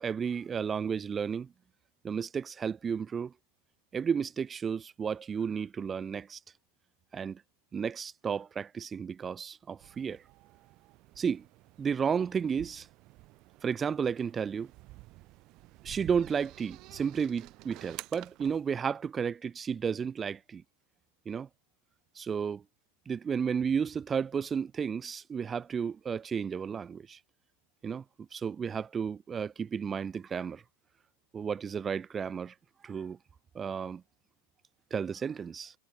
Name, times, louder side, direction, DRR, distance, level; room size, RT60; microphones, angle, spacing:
voice 1, 0.0-1.5 2.0-3.3 3.9-6.4 7.1-7.4 7.7-10.2 11.2-11.5 11.8-12.9 13.6-14.7 15.8-20.6 21.3-21.5 22.2-22.6 23.1-27.2 27.8-30.6 31.3-32.5 32.8-33.2 33.5-34.0 34.9-35.7, right 6 dB, 20° right, 0.3 m, -32 dB
sound 1, 9.8-18.7, right 20 dB, 40° right, 1.8 m, -51 dB
figure-of-eight pair, 90°, 0 cm